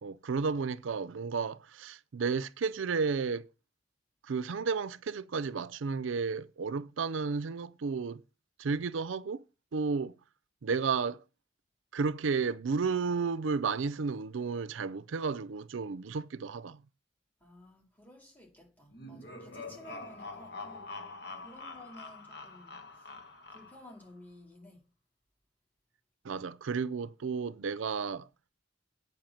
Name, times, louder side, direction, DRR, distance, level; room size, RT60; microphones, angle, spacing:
voice 1, 0.0-3.5 4.2-8.2 8.6-9.4 9.7-10.1 10.6-11.2 11.9-16.8 26.2-28.3, right 5 dB, 85° right, 0.5 m, -32 dB
voice 2, 17.4-20.9 21.4-23.1 23.5-24.9, left 1 dB, 10° left, 2.5 m, -54 dB
sound 1, 18.9-24.0, left 3 dB, 55° left, 1.6 m, -45 dB
9.0 x 5.7 x 7.1 m
head